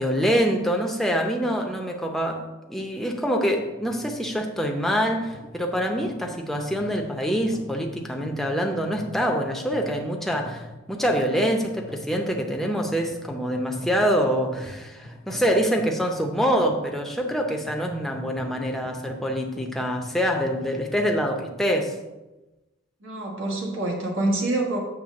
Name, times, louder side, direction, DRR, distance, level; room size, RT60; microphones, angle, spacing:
voice 1, 0.0-2.4 2.7-21.9, equal, ahead, 1 dB, 0.7 m, -25 dB
sound 1, 3.6-21.2, left 1 dB, 40° right, 1.1 m, -44 dB
voice 2, 23.0-24.8, right 2 dB, 80° right, 0 dB, 1.6 m, -26 dB
7.6 x 3.3 x 6.4 m, 1.1 s
head